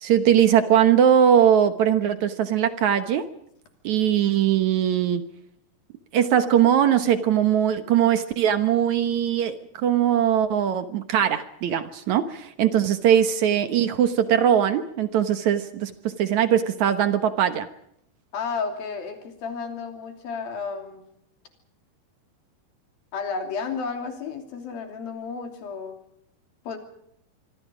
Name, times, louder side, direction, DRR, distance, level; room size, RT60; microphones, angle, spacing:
voice 1, 0.0-3.3 3.8-5.2 6.1-17.7, right 9 dB, 65° right, 10 dB, 2.1 m, -20 dB
voice 2, 18.3-21.0 23.1-26.0 26.6-26.8, left 5 dB, 70° left, 5 dB, 4.8 m, -32 dB
26.0 x 24.0 x 5.1 m, 0.72 s
omnidirectional pair, 4.3 m